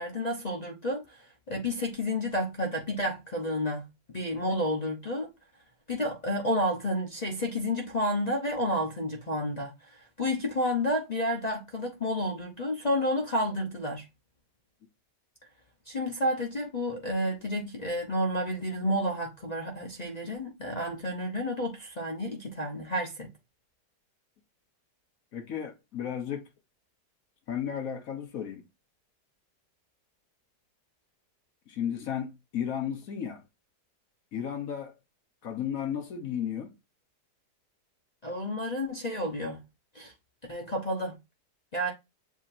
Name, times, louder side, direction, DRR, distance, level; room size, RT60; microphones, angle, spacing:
voice 1, 0.0-5.3 5.9-14.0 15.9-23.3 38.2-39.6 39.9-40.1 40.5-41.2 41.7-41.9, left 1 dB, 40° left, 0.6 m, -30 dB
voice 2, 25.3-26.4 27.5-28.6 31.7-33.4 34.3-34.9 35.4-36.7, left 9 dB, 60° left, 1.2 m, -34 dB
7.3 x 2.9 x 2.5 m
omnidirectional pair, 1.8 m